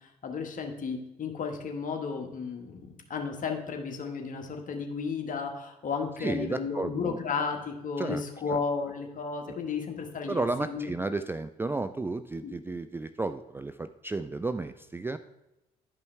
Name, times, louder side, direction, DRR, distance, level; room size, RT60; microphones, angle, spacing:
voice 1, 0.0-10.9 12.4-12.6, left 5 dB, 45° left, 4 dB, 1.3 m, -33 dB
voice 2, 6.2-7.2 8.0-8.2 8.5-8.6 9.5-9.6 10.3-15.2, right 3 dB, 10° right, 10 dB, 0.3 m, -33 dB
11.0 x 5.4 x 3.3 m, 0.93 s
hypercardioid pair, 50°, 19 cm